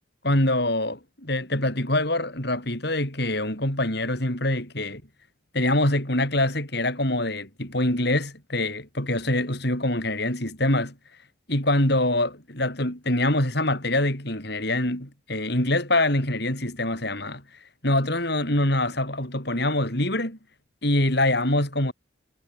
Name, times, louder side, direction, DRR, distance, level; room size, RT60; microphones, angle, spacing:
voice 1, 0.2-5.0 5.5-10.9 11.5-17.4 17.8-20.4 20.8-21.9, left 1 dB, 55° left, 6.2 m, -24 dB
head